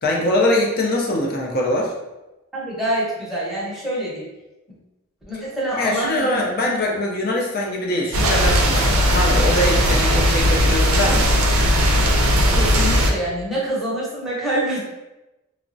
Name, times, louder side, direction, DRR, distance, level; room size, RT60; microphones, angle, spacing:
voice 1, 0.0-1.9 5.7-11.4, left 1 dB, 45° left, -1 dB, 0.5 m, -22 dB
voice 2, 2.5-4.3 5.3-6.4 12.5-14.8, right 1 dB, ahead, -8 dB, 0.8 m, -25 dB
sound 1, 8.1-13.1, equal, 75° right, 0.5 m, -17 dB
3.4 x 2.0 x 2.6 m, 1.0 s
head